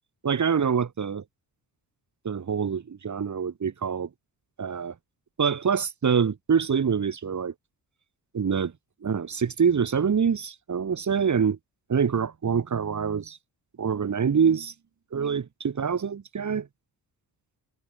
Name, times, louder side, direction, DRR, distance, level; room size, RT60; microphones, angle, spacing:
voice 1, 0.2-1.2 2.2-4.1 4.6-4.9 5.4-7.5 8.3-8.7 9.0-11.6 11.9-13.4 13.8-14.7 15.1-16.7, right 6 dB, 45° right, 7.2 m, -25 dB
cardioid pair, 120°, 39 cm